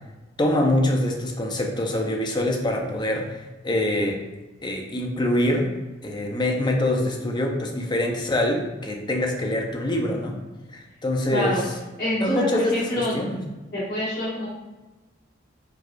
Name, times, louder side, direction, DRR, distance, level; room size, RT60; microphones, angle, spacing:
voice 1, 0.4-4.2 4.6-5.7 6.0-10.4 10.7-11.6 12.2-12.7 13.1-13.4, left 1 dB, 25° left, 1 dB, 0.5 m, -24 dB
voice 2, 11.3-11.6 12.0-13.1 13.7-14.5, left 1 dB, 50° left, -12 dB, 1.2 m, -26 dB
4.6 x 2.3 x 2.5 m, 1.1 s
head